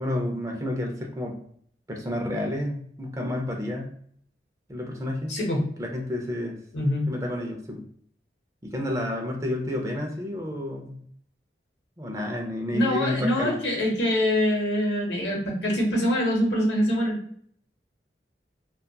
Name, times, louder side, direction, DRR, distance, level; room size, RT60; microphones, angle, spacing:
voice 1, 0.0-1.3 1.9-3.9 4.7-5.3 5.8-6.6 7.1-7.8 8.6-11.0 12.0-13.6, left 1 dB, 15° right, 1 dB, 0.4 m, -30 dB
voice 2, 5.3-5.6 6.7-7.1 12.7-17.2, left 1 dB, 85° left, 0 dB, 0.8 m, -24 dB
2.8 x 2.3 x 2.2 m, 0.62 s
head